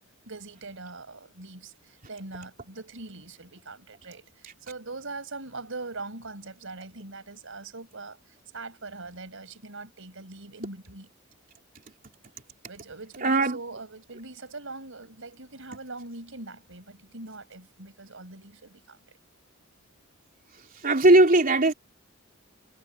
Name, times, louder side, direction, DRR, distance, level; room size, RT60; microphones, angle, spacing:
voice 1, 0.3-11.1 12.7-19.2, right 3 dB, 65° right, 5.9 m, -42 dB
voice 2, 13.2-13.6 20.8-21.7, right 2 dB, 40° right, 3.4 m, -18 dB
head